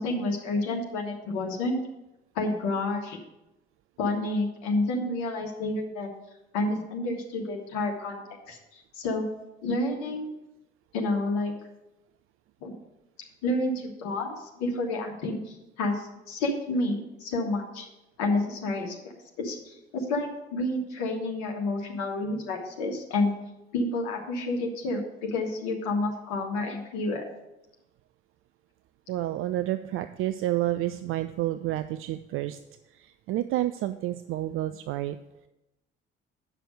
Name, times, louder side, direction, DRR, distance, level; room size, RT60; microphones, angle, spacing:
voice 1, 0.0-1.8 2.3-3.2 4.0-6.1 6.5-9.2 9.6-10.3 10.9-11.5 12.6-12.7 13.4-17.8 18.2-18.9 19.4-19.6 19.9-23.3 23.7-27.2, left 2 dB, 60° left, 1 dB, 1.6 m, -29 dB
voice 2, 29.1-32.6 32.9-35.2, right 14 dB, 45° right, 11 dB, 0.4 m, -30 dB
8.9 x 5.9 x 6.2 m, 0.94 s
figure-of-eight pair, 50°, 31 cm